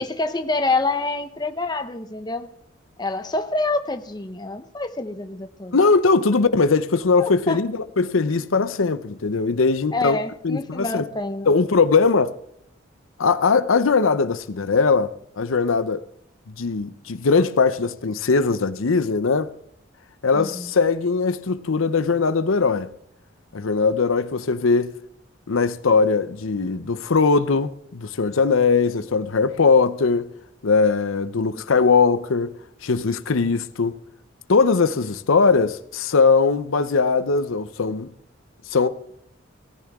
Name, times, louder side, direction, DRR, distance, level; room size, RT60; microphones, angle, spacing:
voice 1, 0.0-2.5 3.0-5.8 7.2-7.6 9.9-11.5 20.3-20.7 31.6-31.7, left 3 dB, 20° left, 0.9 m, -26 dB
voice 2, 5.7-10.2 10.4-11.0 11.5-12.3 13.2-16.0 16.6-19.5 20.2-22.9 23.5-24.9 25.5-30.3 30.6-32.5 32.8-34.0 34.5-38.1 38.7-38.9, left 4 dB, 90° left, 0.7 m, -20 dB
18.0 x 14.0 x 3.6 m
head